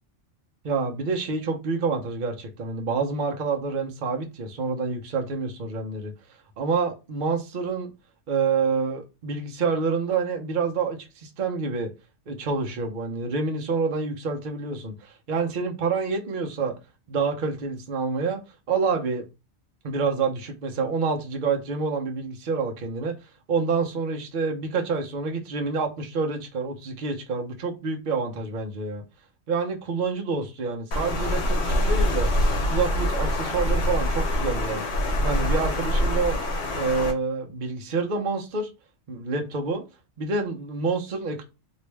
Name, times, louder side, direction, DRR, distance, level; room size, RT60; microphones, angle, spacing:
voice 1, 0.6-6.1 6.6-7.9 8.3-11.9 12.3-16.7 17.1-18.4 18.7-19.2 19.8-23.1 23.5-29.0 29.5-32.3 32.7-34.8 35.2-36.4 36.7-38.7 39.1-39.8 40.2-41.4, right 4 dB, 50° right, 0.7 m, -27 dB
Water, 30.9-37.1, left 1 dB, 65° left, 1.1 m, -24 dB
3.0 x 2.6 x 3.2 m
omnidirectional pair, 1.2 m